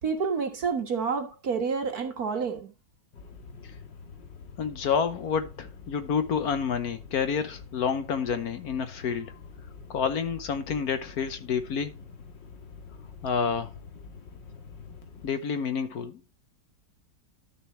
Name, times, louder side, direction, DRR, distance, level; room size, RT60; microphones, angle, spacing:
voice 1, 0.0-2.7, right 5 dB, 55° right, 1.9 m, -29 dB
sound 1, 3.1-15.3, left 5 dB, 90° left, 2.3 m, -46 dB
voice 2, 4.6-9.3 9.9-11.9 13.2-13.7 15.2-16.1, left 6 dB, 60° left, 1.3 m, -29 dB
12.5 x 6.8 x 3.0 m
omnidirectional pair, 1.9 m